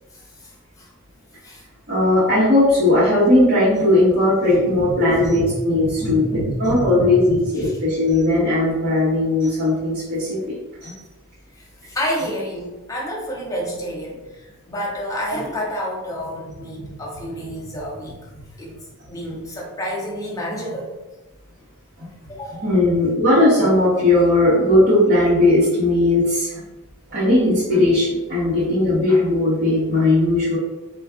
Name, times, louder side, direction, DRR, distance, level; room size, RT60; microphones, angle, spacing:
voice 1, 0.1-0.5 0.8-0.9 1.4-1.6 4.5-5.5 5.8-7.1 7.5-7.8 11.5-21.1 22.2-22.7 28.4-28.5, equal, 15° left, -5 dB, 0.7 m, -30 dB
voice 2, 1.9-6.2 6.6-10.4 10.8-10.9 22.6-26.5 27.1-30.6, left 1 dB, 45° right, -12 dB, 1.1 m, -17 dB
2.4 x 2.3 x 3.5 m, 1.1 s
head